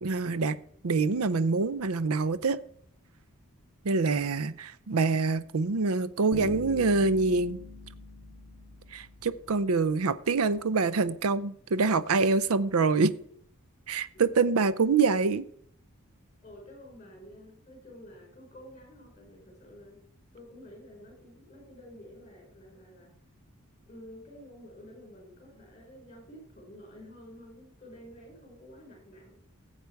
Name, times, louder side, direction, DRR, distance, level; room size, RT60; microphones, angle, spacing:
voice 1, 0.0-0.6 0.8-2.6 3.8-7.6 8.9-13.1 13.9-15.4, right 4 dB, 80° right, 15 dB, 0.6 m, -25 dB
Bass guitar, 6.3-9.4, left 3 dB, 5° right, 2.5 m, -43 dB
voice 2, 16.4-20.0 20.3-23.1 23.9-29.3, equal, 30° left, 1 dB, 5.0 m, -50 dB
15.0 x 8.3 x 4.7 m, 0.64 s
head